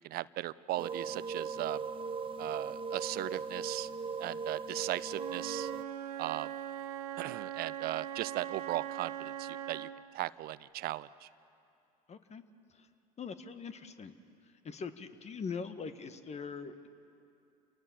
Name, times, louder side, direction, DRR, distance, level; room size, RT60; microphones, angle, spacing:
voice 1, 0.1-1.8 2.4-3.9 4.2-5.7 6.2-6.5 7.2-9.9 10.1-11.3, right 16 dB, 50° right, 18 dB, 0.6 m, -37 dB
sound 1, 0.8-5.8, right 5 dB, 25° right, 0.9 m, -39 dB
Wind instrument woodwind instrument, 5.1-10.1, right 10 dB, 80° right, 1.0 m, -41 dB
voice 2, 12.1-12.4 12.7-12.9 13.2-14.1 14.4-16.9, left 5 dB, 35° left, 10 dB, 1.6 m, -42 dB
28.5 x 19.0 x 7.3 m, 2.6 s
hypercardioid pair, 70°, 20 cm